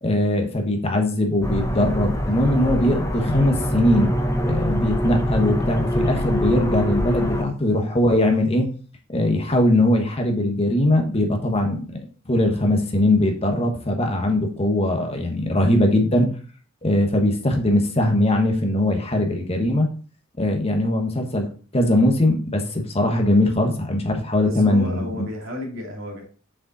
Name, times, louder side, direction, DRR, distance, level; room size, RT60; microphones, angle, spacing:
voice 1, 0.0-4.1 4.4-8.7 9.1-12.0 12.2-16.3 16.8-19.9 20.4-25.3, left 1 dB, 30° left, 3 dB, 1.3 m, -20 dB
sound 1, 1.4-7.4, equal, 15° left, 0.7 m, -24 dB
voice 2, 24.4-26.2, left 1 dB, 90° right, 0 dB, 2.4 m, -32 dB
6.3 x 5.2 x 4.1 m, 0.40 s
head